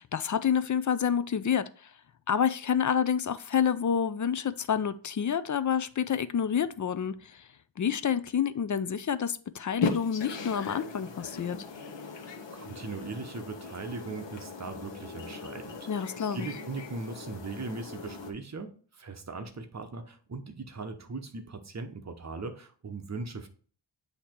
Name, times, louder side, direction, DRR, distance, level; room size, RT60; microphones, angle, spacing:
voice 1, 0.0-1.7 2.3-7.4 7.8-11.7 15.9-16.5, left 8 dB, 45° left, 0.4 m, -28 dB
sound 1, 9.8-18.3, left 4 dB, 80° left, 1.0 m, -38 dB
voice 2, 12.0-23.5, right 3 dB, 40° right, 0.9 m, -39 dB
8.3 x 2.9 x 4.4 m
wide cardioid pair, 115°, 43 cm